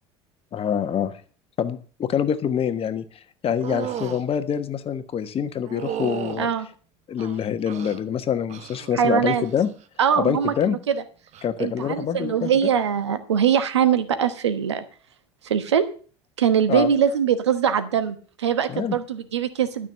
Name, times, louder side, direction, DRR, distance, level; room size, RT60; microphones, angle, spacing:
voice 1, 0.5-1.2 1.6-3.0 3.4-6.5 7.1-9.7 10.1-10.8 11.4-12.5 16.7-16.9 18.7-19.0, left 8 dB, 45° left, 11 dB, 1.4 m, -25 dB
sound 1, 3.6-4.2 5.7-6.4 7.2-8.0 8.5-8.9 9.3-9.7 11.3-11.5, right 10 dB, 55° right, 1.3 m, -33 dB
voice 2, 8.9-9.4 10.0-11.0 11.6-14.8 15.4-15.8 16.4-19.9, right 8 dB, 90° right, 12 dB, 1.2 m, -22 dB
12.5 x 6.4 x 7.5 m, 0.40 s
hypercardioid pair, 70°, 14 cm